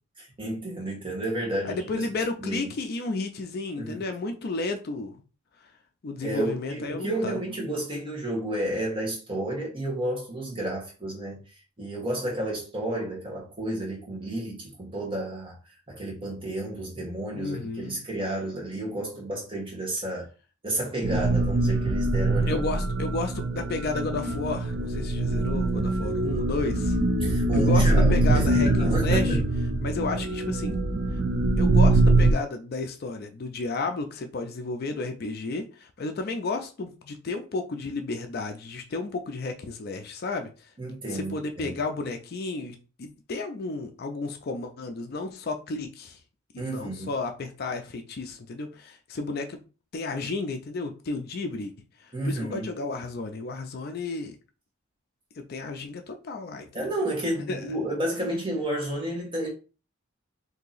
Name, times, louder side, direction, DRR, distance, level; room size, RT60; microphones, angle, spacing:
voice 1, 0.2-2.1 2.4-2.7 3.8-4.0 6.2-11.4 11.8-15.5 15.9-20.2 20.6-22.6 27.2-29.4 40.8-41.8 46.6-47.1 52.1-52.7 56.7-59.5, right 1 dB, 25° right, 1.2 m, -31 dB
voice 2, 1.6-5.2 6.0-7.4 17.3-18.0 22.5-27.0 27.5-29.4 29.8-30.8 31.1-40.7 41.1-46.2 46.5-49.6 49.9-51.7 52.0-54.4 55.4-56.9 57.5-57.8, left 3 dB, 45° left, 0.4 m, -32 dB
sound 1, 21.0-32.3, right 2 dB, 50° right, 0.4 m, -23 dB
2.8 x 2.7 x 3.9 m
head